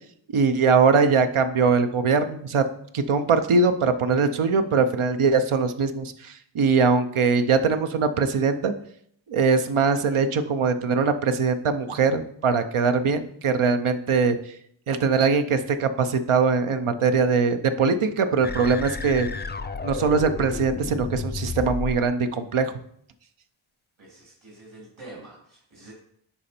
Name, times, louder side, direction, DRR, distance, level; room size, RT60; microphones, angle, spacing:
voice 1, 0.3-2.6 2.9-8.7 9.3-14.4 14.9-19.3 19.8-22.7, right 5 dB, 85° right, 9 dB, 0.8 m, -22 dB
sound 1, 18.4-22.1, left 4 dB, 20° left, 0.5 m, -32 dB
voice 2, 24.0-25.9, right 2 dB, 70° right, -4 dB, 3.0 m, -46 dB
10.0 x 4.2 x 4.3 m, 0.68 s
wide cardioid pair, 75°, 48 cm